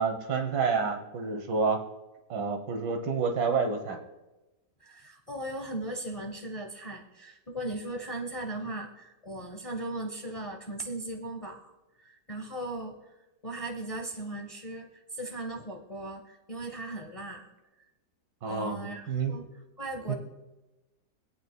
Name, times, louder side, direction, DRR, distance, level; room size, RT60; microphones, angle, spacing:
voice 1, 0.0-1.8 2.3-4.0 18.4-19.3 20.1-20.2, right 5 dB, 85° right, 4 dB, 1.9 m, -29 dB
voice 2, 4.8-11.7 12.0-13.0 13.4-17.5 18.5-19.5 19.8-20.1, right 1 dB, 30° left, 2 dB, 0.7 m, -38 dB
25.0 x 8.6 x 2.2 m, 1.0 s
omnidirectional pair, 1.9 m